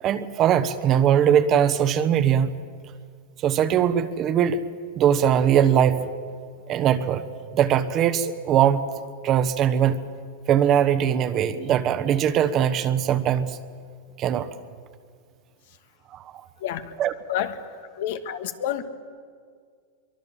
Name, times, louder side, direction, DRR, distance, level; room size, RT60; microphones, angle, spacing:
voice 1, 0.0-2.6 3.4-4.6 5.0-6.1 6.7-7.2 7.5-8.8 9.2-10.0 10.5-13.6 14.2-14.5 16.1-16.2 17.0-17.1, right 9 dB, 35° right, 11 dB, 1.2 m, -21 dB
voice 2, 17.3-17.7 18.0-18.9, left 10 dB, 70° left, 9 dB, 1.7 m, -29 dB
24.0 x 23.0 x 7.3 m, 2.1 s
supercardioid pair, 135°, 0 cm